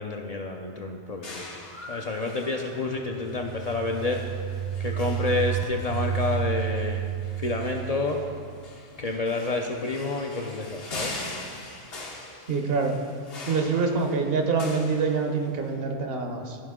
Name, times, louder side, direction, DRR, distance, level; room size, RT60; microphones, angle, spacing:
voice 1, 0.0-1.6 1.9-4.2 4.8-7.1 7.4-8.2 9.0-11.2, left 3 dB, 50° left, 1 dB, 0.5 m, -29 dB
sound 1, 1.2-15.7, left 2 dB, 65° left, 1.2 m, -42 dB
sound 2, 3.0-8.6, right 8 dB, 35° right, 0.5 m, -31 dB
voice 2, 12.5-12.9 13.5-16.6, right 4 dB, 65° right, 4 dB, 1.0 m, -25 dB
14.5 x 4.9 x 3.6 m, 2.2 s
omnidirectional pair, 1.1 m